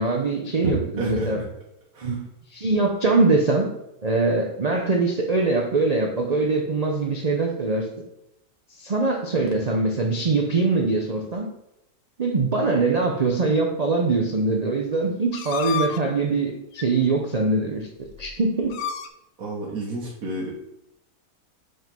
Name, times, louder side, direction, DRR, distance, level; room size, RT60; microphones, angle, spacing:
voice 1, 0.0-1.4 2.0-2.2 2.5-3.7 4.0-7.9 8.8-11.5 12.2-18.8, right 3 dB, 50° right, 0 dB, 0.5 m, -23 dB
voice 2, 0.6-1.4 1.9-2.2 19.4-20.5, right 2 dB, 70° right, -4 dB, 1.6 m, -29 dB
sound 1, 15.3-16.0 16.7-16.9 17.8-17.9 18.0-18.3 18.6-19.1, left 7 dB, 70° left, 0.9 m, -30 dB
5.3 x 3.8 x 5.2 m, 0.85 s
omnidirectional pair, 1.6 m